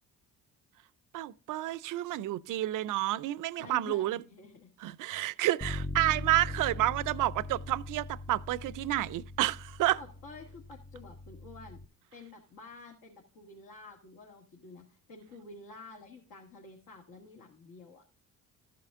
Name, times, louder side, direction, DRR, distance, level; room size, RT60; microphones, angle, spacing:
voice 1, 1.1-4.2 4.8-10.0, right 15 dB, 55° right, 0.5 m, -30 dB
voice 2, 3.6-4.7 10.0-11.8 12.1-18.0, left 3 dB, 65° left, 1.9 m, -50 dB
Bass guitar, 5.6-11.9, left 2 dB, 10° left, 0.4 m, -41 dB
13.5 x 5.7 x 3.6 m
supercardioid pair, 75°, 38 cm